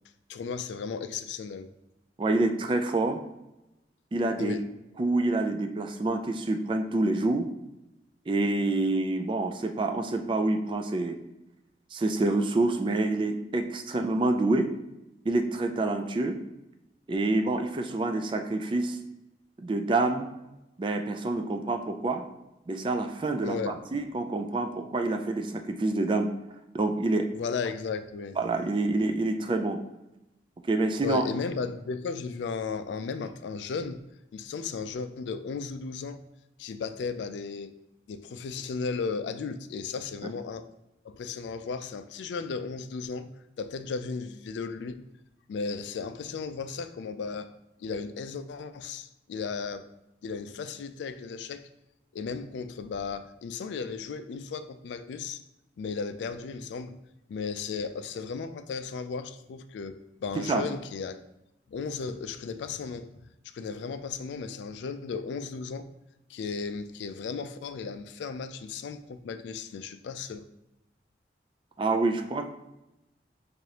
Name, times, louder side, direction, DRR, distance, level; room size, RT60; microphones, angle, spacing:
voice 1, 0.3-1.7 4.4-4.6 23.4-24.0 27.3-28.4 31.0-34.0 34.3-36.2 36.6-37.8 38.1-40.7 41.0-43.3 43.6-45.0 45.5-47.5 47.8-49.9 50.2-51.7 52.1-55.4 55.8-57.0 57.3-61.2 61.7-63.2 63.5-65.9 66.3-70.5, left 5 dB, 85° left, 10 dB, 0.3 m, -35 dB
voice 2, 2.2-3.2 4.1-4.6 5.0-7.5 8.3-11.2 11.9-14.7 15.3-16.4 17.1-19.0 19.6-20.3 20.8-22.2 22.7-26.3 26.7-27.3 28.4-29.8 30.7-31.2 60.4-60.6 71.8-72.5, right 2 dB, 30° right, 6 dB, 0.3 m, -27 dB
4.8 x 2.6 x 2.8 m, 0.94 s
head